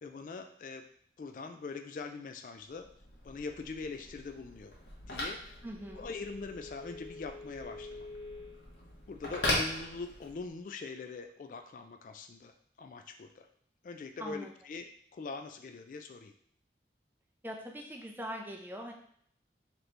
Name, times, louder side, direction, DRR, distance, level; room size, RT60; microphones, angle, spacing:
voice 1, 0.0-0.9 1.2-2.9 3.2-4.7 5.0-5.6 6.0-8.1 9.1-12.5 12.8-13.5 13.8-16.3, left 4 dB, 45° left, 6 dB, 0.3 m, -42 dB
Telephone, 2.7-10.5, left 1 dB, 85° left, 1.2 m, -39 dB
voice 2, 5.6-6.1 14.2-14.5 17.4-18.9, equal, 10° right, 1 dB, 0.5 m, -42 dB
3.9 x 3.0 x 3.3 m, 0.64 s
head